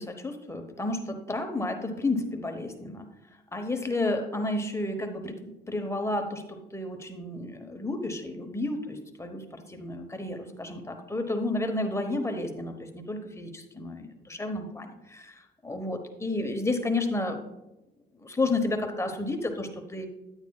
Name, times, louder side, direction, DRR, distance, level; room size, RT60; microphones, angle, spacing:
voice 1, 0.0-3.1 3.5-17.4 18.2-20.1, left 2 dB, 15° left, 5 dB, 1.0 m, -31 dB
9.7 x 8.9 x 2.3 m, 0.95 s
cardioid pair, 90°, 20 cm